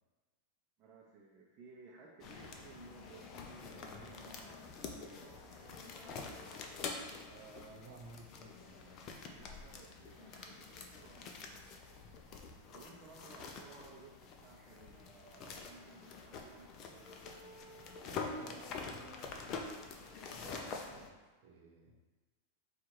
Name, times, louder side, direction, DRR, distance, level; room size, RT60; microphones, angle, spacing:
voice 1, 0.8-6.6 9.3-12.1 12.7-17.2, right 3 dB, 30° right, -3 dB, 0.6 m, -58 dB
sound 1, 2.2-21.1, left 4 dB, 35° left, 0.5 m, -47 dB
voice 2, 7.3-9.0 18.0-19.8 20.3-22.0, right 3 dB, 65° right, 1 dB, 0.9 m, -56 dB
4.6 x 2.4 x 4.5 m, 1.3 s
supercardioid pair, 155°, 0 cm